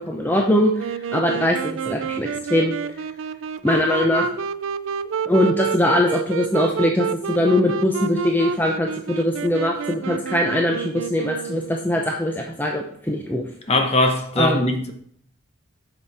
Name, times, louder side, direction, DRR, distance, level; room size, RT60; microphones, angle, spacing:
voice 1, 0.1-2.7 3.6-4.3 5.3-13.4 14.4-14.6, left 1 dB, 10° left, 0.7 m, -21 dB
Wind instrument woodwind instrument, 0.8-11.9, right 6 dB, 75° right, 0.4 m, -29 dB
voice 2, 13.7-14.9, left 1 dB, 30° left, 1.0 m, -20 dB
8.4 x 6.0 x 4.3 m
head